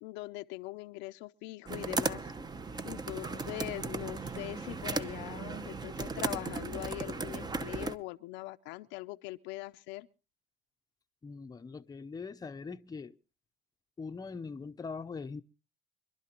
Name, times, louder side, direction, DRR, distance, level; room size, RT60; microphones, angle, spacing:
voice 1, 0.0-2.3 2.8-10.1, left 19 dB, 90° left, 0.6 m, -42 dB
sound 1, 1.7-7.9, right 3 dB, 20° right, 0.8 m, -36 dB
voice 2, 11.2-13.2 14.0-15.4, left 4 dB, 20° left, 0.7 m, -42 dB
25.5 x 12.0 x 2.9 m
cardioid pair, 105°, 18 cm